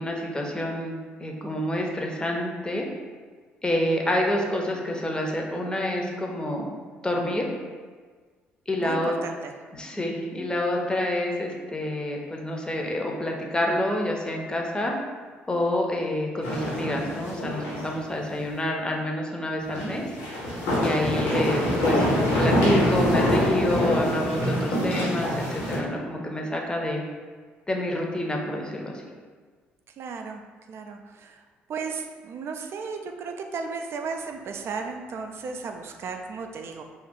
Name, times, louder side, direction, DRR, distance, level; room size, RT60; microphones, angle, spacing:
voice 1, 0.0-2.8 3.6-6.7 7.0-7.5 8.7-9.1 9.7-15.0 15.5-20.0 20.8-22.1 22.4-27.0 27.7-28.9, left 1 dB, 15° left, 0 dB, 0.6 m, -28 dB
voice 2, 8.8-9.5 20.9-21.5 30.0-30.4 30.7-31.4 31.7-36.8, right 5 dB, 50° right, 4 dB, 0.3 m, -35 dB
sound 1, 16.4-18.0 18.2-18.3 19.7-25.8, left 1 dB, 75° left, 0.8 m, -25 dB
2.6 x 2.3 x 3.6 m, 1.5 s
hypercardioid pair, 50°, 5 cm